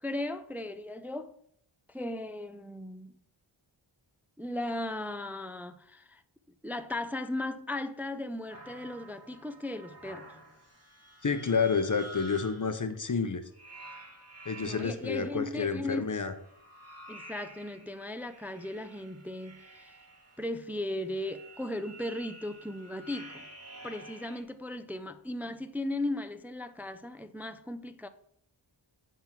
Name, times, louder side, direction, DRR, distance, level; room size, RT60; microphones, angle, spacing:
voice 1, 0.0-1.4 1.9-3.1 4.4-6.2 6.6-10.3 14.6-16.1 17.1-20.0 20.4-23.4 23.8-28.1, left 1 dB, 5° right, 0.4 m, -37 dB
sound 1, 8.5-12.8 13.5-15.2 16.2-24.4, right 2 dB, 30° right, 2.4 m, -50 dB
voice 2, 11.2-13.4 14.5-16.3, left 5 dB, 40° left, 0.8 m, -29 dB
8.9 x 3.7 x 5.8 m
wide cardioid pair, 60°, 49 cm